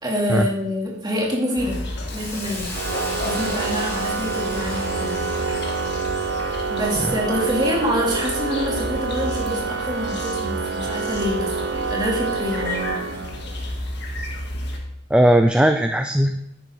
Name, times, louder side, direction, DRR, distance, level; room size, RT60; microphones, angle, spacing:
voice 1, 0.0-1.8 2.1-2.7 3.2-5.2 6.7-13.2, equal, 20° right, -3 dB, 2.4 m, -26 dB
sound 1, 1.6-14.8, left 1 dB, 55° left, 1.8 m, -32 dB
Hiss, 2.1-6.8, left 2 dB, 15° left, 1.9 m, -36 dB
Organ, 2.7-13.7, right 4 dB, 60° right, 0.6 m, -27 dB
voice 2, 15.1-16.4, right 1 dB, 5° right, 6 dB, 0.4 m, -17 dB
10.5 x 9.1 x 3.7 m, 0.81 s
head